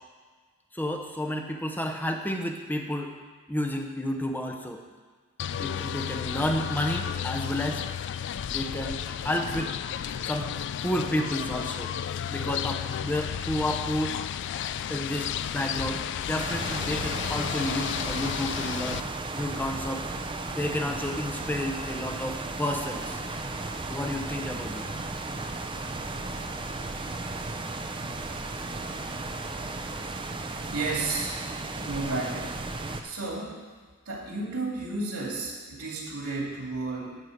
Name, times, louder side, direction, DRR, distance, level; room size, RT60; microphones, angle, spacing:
voice 1, 0.7-3.1 3.5-4.8 5.6-7.9 8.4-9.7 10.2-10.5 10.8-11.9 12.3-14.2 14.9-19.1 19.3-20.0 20.5-23.2 23.9-24.9, left 1 dB, 10° left, 3 dB, 0.8 m, -31 dB
sound 1, 5.4-19.0, left 9 dB, 55° left, 0.3 m, -33 dB
sound 2, 16.3-33.0, right 2 dB, 25° right, 0.6 m, -35 dB
voice 2, 30.7-31.3 31.8-32.5 33.0-33.6 34.1-37.2, right 3 dB, 85° right, -2 dB, 2.6 m, -32 dB
11.0 x 4.6 x 7.9 m, 1.5 s
head